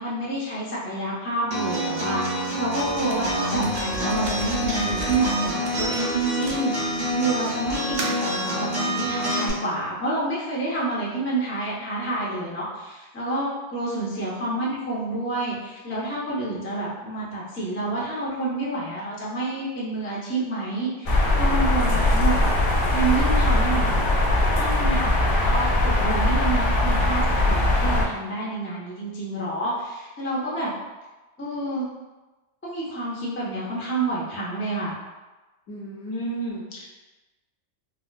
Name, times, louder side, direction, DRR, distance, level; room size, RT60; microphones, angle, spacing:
voice 1, 0.0-22.5 22.9-24.0 24.6-30.7 31.4-31.9 32.6-35.0, right 2 dB, 20° left, -6 dB, 0.3 m, -28 dB
Acoustic guitar, 1.5-9.5, equal, 40° right, 1.0 m, -27 dB
sound 1, 2.8-7.1 7.7-8.3, right 3 dB, 70° right, 0.8 m, -36 dB
sound 2, 21.1-28.0, left 1 dB, 60° left, 0.6 m, -21 dB
voice 2, 35.7-37.0, right 2 dB, 80° left, -3 dB, 1.1 m, -33 dB
4.2 x 2.1 x 2.3 m, 1.1 s
omnidirectional pair, 1.4 m